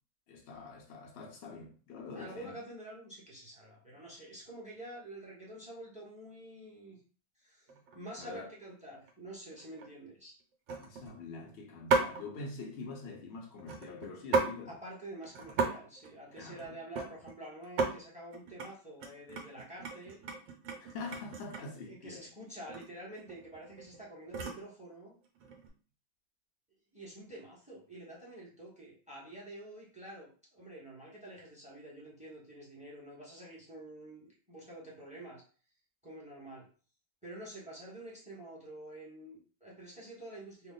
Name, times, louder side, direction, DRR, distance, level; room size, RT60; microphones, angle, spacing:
voice 1, 0.3-2.6 8.2-8.5 10.8-14.8 16.4-16.7 20.8-22.2, left 3 dB, 65° left, 0.6 m, -45 dB
voice 2, 2.1-7.0 7.4-10.3 14.7-20.2 21.9-25.1 26.9-35.4 36.0-36.7 37.2-40.7, right 1 dB, 5° right, 0.9 m, -48 dB
sound 1, 7.7-8.0 8.4-8.7 9.1-9.2 9.5-9.9 10.7-11.2 11.9-12.2 13.6-14.6 14.9-15.0 15.2-15.7 16.0-17.4 17.6-17.9 18.3-18.7 19.0-21.8 22.7-22.9 23.2-24.7 25.4-25.7, right 4 dB, 75° right, 1.4 m, -34 dB
3.3 x 2.2 x 3.8 m
omnidirectional pair, 2.1 m